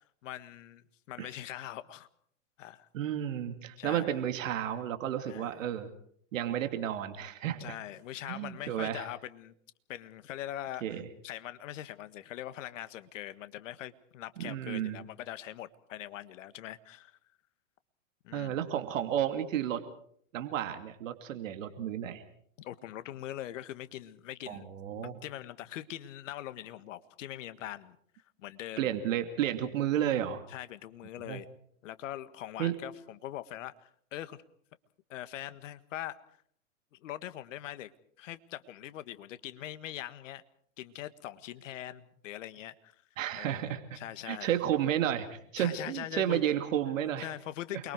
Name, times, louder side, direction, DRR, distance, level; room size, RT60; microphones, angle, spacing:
voice 1, 0.2-2.1 2.6-2.9 3.8-4.1 5.3-5.6 7.6-9.5 9.9-17.1 18.2-18.6 22.6-24.7 25.0-28.0 28.4-28.9 30.5-31.5 31.8-33.7 34.1-34.4 35.1-36.2 37.0-37.9 38.2-40.4 40.8-42.9 43.4-44.6 45.6-46.4 47.2-47.9, left 13 dB, 65° left, 1.6 m, -42 dB
voice 2, 2.9-5.9 6.3-7.8 8.3-9.1 10.8-11.0 14.4-15.0 18.3-19.8 20.3-22.2 24.5-25.2 28.8-30.4 31.3-31.4 32.6-32.7 43.2-44.0 44.2-47.3, right 10 dB, 70° right, 2.7 m, -32 dB
28.5 x 22.5 x 4.7 m
hypercardioid pair, 110°, 41 cm